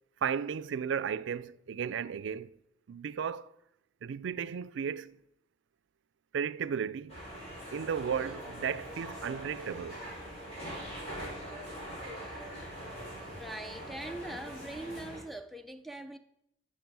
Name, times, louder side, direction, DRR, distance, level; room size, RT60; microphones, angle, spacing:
voice 1, 0.2-2.5 2.9-3.5 4.0-5.2 6.3-7.2 7.7-10.0, right 7 dB, 80° right, 0.4 m, -34 dB
sound 1, 7.1-15.2, equal, 35° left, 4.6 m, -43 dB
voice 2, 12.1-12.5 13.4-16.2, right 1 dB, ahead, 0.4 m, -42 dB
13.0 x 6.6 x 4.7 m
head